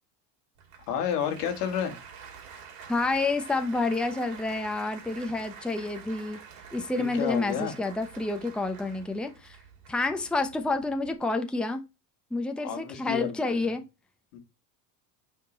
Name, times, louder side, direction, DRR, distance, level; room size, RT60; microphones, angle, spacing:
Applause, 0.6-11.2, right 7 dB, 75° right, 2.2 m, -48 dB
voice 1, 0.9-1.9 7.0-7.7 12.6-13.7 14.3-14.4, left 8 dB, 80° left, 1.9 m, -31 dB
voice 2, 2.9-6.4 6.7-9.6 9.9-11.8 12.3-13.8, left 3 dB, ahead, 0.7 m, -29 dB
6.6 x 3.7 x 3.9 m
supercardioid pair, 95°, 47 cm